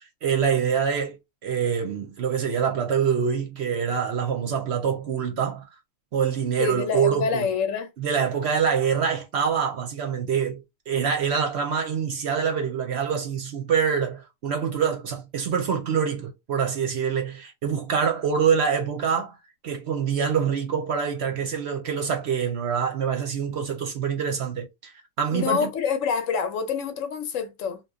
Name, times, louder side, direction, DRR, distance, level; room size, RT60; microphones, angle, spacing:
voice 1, 0.0-5.6 6.1-7.5 8.0-19.3 19.6-24.9 25.2-25.7, right 7 dB, 60° right, 0.8 m, -25 dB
voice 2, 6.6-7.9 25.3-27.8, left 6 dB, 70° left, 1.0 m, -26 dB
3.0 x 2.3 x 3.6 m
omnidirectional pair, 1.5 m